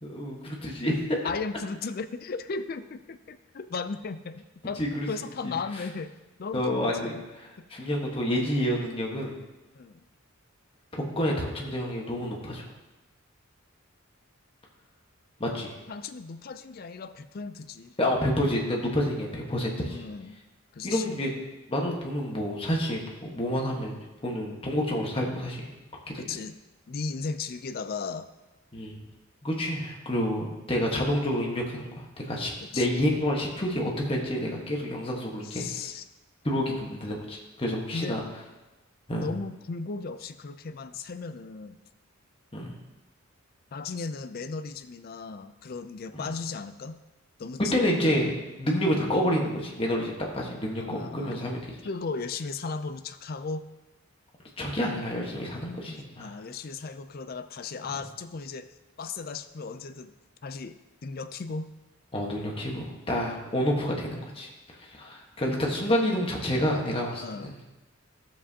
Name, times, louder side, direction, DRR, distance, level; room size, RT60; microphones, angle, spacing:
voice 1, 0.0-1.2 4.8-5.1 5.4-5.6 6.5-7.1 7.7-9.3 10.9-12.7 15.4-15.8 18.0-20.0 20.8-21.3 21.7-24.0 24.2-25.7 26.1-26.2 28.7-29.0 29.4-35.7 36.4-38.2 39.1-39.3 42.5-42.7 46.1-46.2 47.7-48.3 48.6-51.6 54.6-56.4 62.1-64.5 64.8-67.5, equal, 25° left, -1 dB, 1.3 m, -28 dB
voice 2, 1.2-4.8 5.1-6.1 6.4-7.2 7.6-7.7 9.7-10.1 15.9-17.9 19.8-20.4 20.7-21.2 26.2-26.6 26.9-28.3 32.6-32.9 35.4-36.0 37.9-38.2 39.2-41.8 43.7-47.0 47.4-47.6 48.9-49.1 50.8-51.4 51.8-53.6 56.2-58.7 59.0-60.1 60.4-61.7 67.2-67.6, left 4 dB, 45° left, 11 dB, 0.4 m, -36 dB
12.5 x 7.3 x 2.8 m, 1.1 s
head